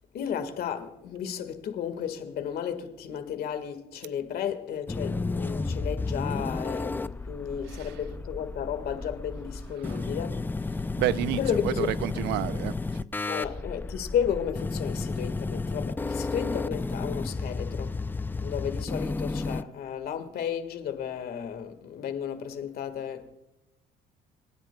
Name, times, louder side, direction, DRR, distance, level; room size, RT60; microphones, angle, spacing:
voice 1, 0.1-10.4 11.4-11.9 13.3-18.0 18.4-23.3, left 8 dB, 65° left, 1.8 m, -33 dB
sound 1, 4.9-19.6, left 3 dB, 10° left, 0.4 m, -32 dB
voice 2, 7.7-8.0 9.8-10.0 11.0-12.7, right 14 dB, 90° right, 0.5 m, -30 dB
26.5 x 10.0 x 2.3 m
cardioid pair, 110°, 17 cm